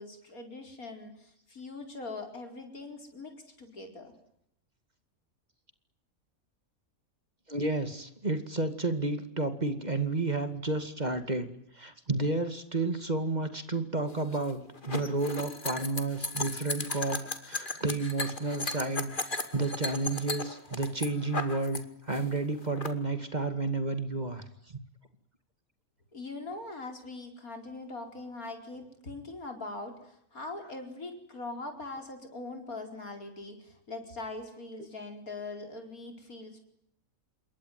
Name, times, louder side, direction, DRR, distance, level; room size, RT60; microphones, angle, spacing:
voice 1, 0.0-4.1 26.1-36.6, left 2 dB, 85° left, 5 dB, 5.2 m, -42 dB
voice 2, 7.5-11.5 11.7-21.8 22.1-24.4, right 2 dB, 30° right, 10 dB, 2.4 m, -31 dB
sound 1, 14.1-21.8 22.1-22.9, left 2 dB, 35° left, 2.5 m, -36 dB
27.5 x 22.5 x 9.4 m, 0.75 s
omnidirectional pair, 1.5 m